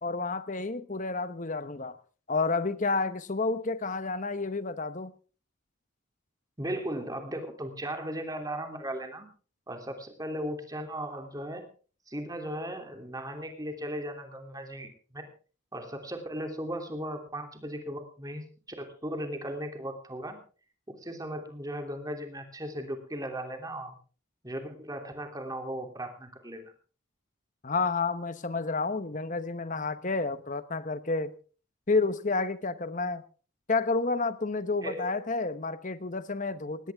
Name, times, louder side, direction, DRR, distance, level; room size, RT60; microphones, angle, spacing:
voice 1, 0.0-2.0 2.3-5.1 27.6-31.3 31.9-33.2 33.7-36.9, left 3 dB, 40° left, 13 dB, 1.1 m, -30 dB
voice 2, 6.6-9.3 9.7-11.6 12.1-15.3 15.7-18.4 18.8-20.4 20.9-24.0 24.4-26.7 34.8-35.2, right 1 dB, 15° right, 5 dB, 3.0 m, -37 dB
19.0 x 17.0 x 3.6 m, 0.38 s
head